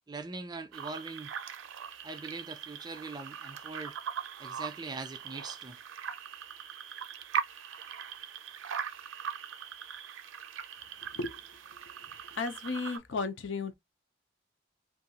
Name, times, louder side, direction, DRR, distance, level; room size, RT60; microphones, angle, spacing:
voice 1, 0.1-1.3 2.0-4.0 4.4-5.8, right 3 dB, 20° right, 0.4 m, -41 dB
sound 1, 0.7-13.0, right 8 dB, 75° right, 0.5 m, -40 dB
voice 2, 12.3-13.7, left 4 dB, 65° left, 0.5 m, -34 dB
2.6 x 2.3 x 2.7 m
head